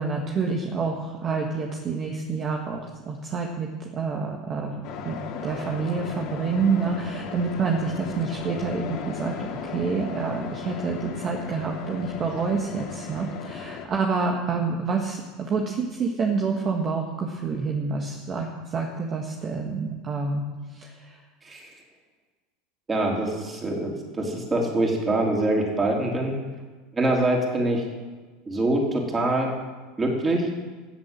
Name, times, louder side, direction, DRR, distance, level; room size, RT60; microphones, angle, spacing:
voice 1, 0.0-2.8 3.1-5.2 5.4-9.3 9.6-20.4 20.7-21.2, right 4 dB, 35° right, 1 dB, 1.7 m, -28 dB
sound 1, 4.8-13.9, left 6 dB, 55° left, 2.3 m, -36 dB
voice 2, 22.9-26.3 26.9-27.8 28.5-29.5 30.0-30.5, right 1 dB, 20° right, -1 dB, 3.9 m, -24 dB
15.0 x 8.0 x 7.7 m, 1.3 s
supercardioid pair, 110°, 0 cm